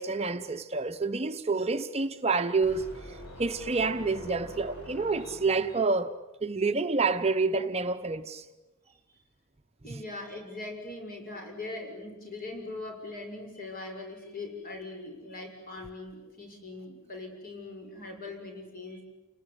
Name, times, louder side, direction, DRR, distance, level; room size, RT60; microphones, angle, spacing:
voice 1, 0.0-6.1 6.4-8.4, right 4 dB, 30° right, 0.9 m, -28 dB
sound 1, 2.6-5.9, equal, 65° left, 7.7 m, -45 dB
voice 2, 9.8-19.0, left 2 dB, 45° left, 6.4 m, -41 dB
29.5 x 19.5 x 9.9 m
head